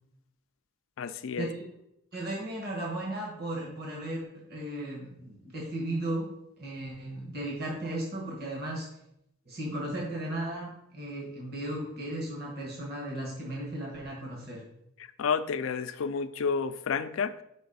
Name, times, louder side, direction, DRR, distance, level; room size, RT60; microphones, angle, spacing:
voice 1, 1.0-1.5 15.2-17.4, left 6 dB, 85° left, 13 dB, 0.4 m, -30 dB
voice 2, 2.1-6.3 6.6-8.9 9.5-14.6, right 1 dB, 50° right, -3 dB, 1.4 m, -35 dB
4.6 x 4.1 x 5.4 m, 0.78 s
head